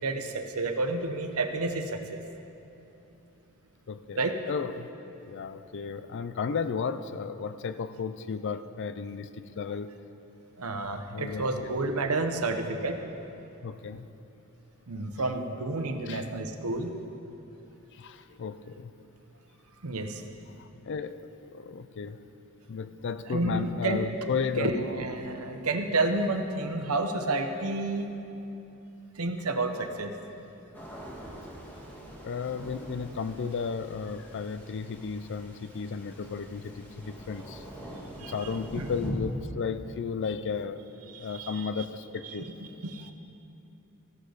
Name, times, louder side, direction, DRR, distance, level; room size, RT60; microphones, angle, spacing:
voice 1, 0.0-2.2 4.1-4.3 10.6-13.0 14.9-16.9 19.8-20.2 23.3-24.1 24.6-28.1 29.2-30.1 38.2-38.9 41.1-41.7 42.2-43.1, right 2 dB, 75° right, 6 dB, 0.9 m, -30 dB
voice 2, 3.9-4.2 4.5-4.9 5.2-9.9 11.1-11.7 13.6-14.1 16.1-16.2 18.0-18.9 20.5-22.2 22.7-24.7 32.2-37.6 38.2-40.8 41.2-42.5, left 5 dB, 55° left, 12 dB, 0.4 m, -34 dB
sound 1, 30.7-39.1, right 1 dB, 10° left, 1.7 m, -45 dB
14.5 x 11.5 x 4.0 m, 2.9 s
head